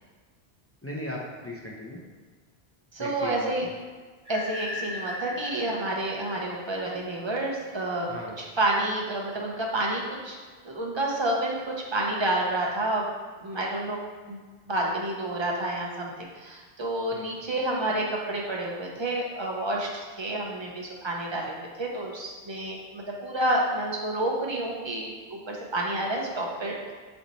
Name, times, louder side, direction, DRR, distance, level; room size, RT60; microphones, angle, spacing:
voice 1, 0.8-2.0 3.0-3.7 8.1-8.4 17.1-17.3, left 1 dB, 20° left, -4 dB, 0.3 m, -37 dB
voice 2, 2.9-3.6 4.3-10.4 10.6-13.1 13.4-14.0 14.3-26.9, right 1 dB, 30° right, -2 dB, 0.6 m, -29 dB
sound 1, 4.2-7.1, left 2 dB, 10° right, 1.5 m, -38 dB
4.0 x 3.4 x 4.0 m, 1.4 s
omnidirectional pair, 1.1 m